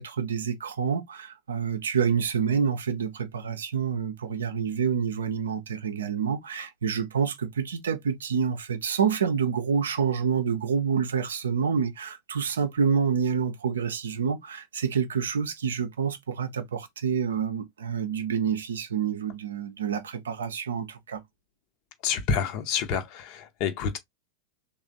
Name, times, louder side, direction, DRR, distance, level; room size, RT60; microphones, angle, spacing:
voice 1, 0.0-21.2, right 7 dB, 65° right, 0.5 m, -28 dB
voice 2, 22.0-24.0, left 7 dB, 45° left, 0.7 m, -28 dB
3.2 x 2.0 x 3.7 m
figure-of-eight pair, 90°, 0 cm